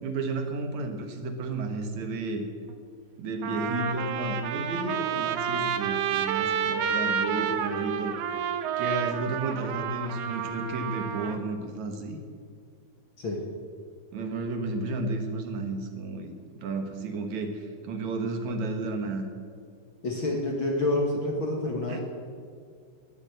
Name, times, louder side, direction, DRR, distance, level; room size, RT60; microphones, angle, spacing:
voice 1, 0.0-2.4 3.2-8.4 8.8-12.2 14.1-16.3 16.6-19.3 21.9-22.0, right 3 dB, 60° right, 5 dB, 2.2 m, -32 dB
Trumpet, 2.7-2.8 3.4-11.4, right 8 dB, 90° right, 2.9 m, -30 dB
voice 2, 20.0-22.0, left 2 dB, 50° left, 0 dB, 1.5 m, -28 dB
19.5 x 8.3 x 7.9 m, 2.1 s
omnidirectional pair, 4.5 m